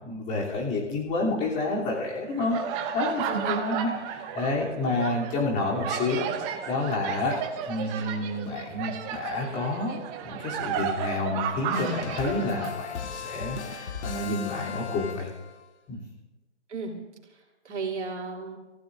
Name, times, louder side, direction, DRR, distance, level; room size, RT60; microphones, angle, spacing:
voice 1, 0.0-2.6 2.9-7.4 7.7-15.3 15.9-16.0, left 2 dB, 20° left, -3 dB, 3.2 m, -29 dB
sound 1, 1.7-12.8, right 8 dB, 15° right, 0.7 m, -33 dB
voice 2, 3.3-3.6 16.7-16.9 17.2-18.6, right 4 dB, 70° right, -1 dB, 3.1 m, -35 dB
sound 2, 11.7-15.6, left 7 dB, 65° left, 1.8 m, -36 dB
30.0 x 15.5 x 2.6 m, 1.1 s
hypercardioid pair, 145°, 36 cm